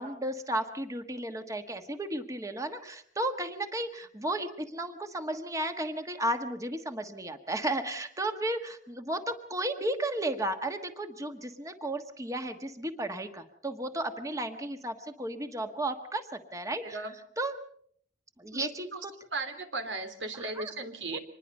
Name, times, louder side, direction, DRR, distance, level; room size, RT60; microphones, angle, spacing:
voice 1, 0.0-17.0 17.4-17.5 18.4-19.1 20.3-20.7 21.1-21.2, right 1 dB, 20° right, 6 dB, 1.4 m, -34 dB
voice 2, 16.8-17.1 18.5-19.0 19.3-21.2, right 3 dB, 85° right, 8 dB, 3.1 m, -36 dB
25.5 x 21.0 x 5.5 m, 0.63 s
head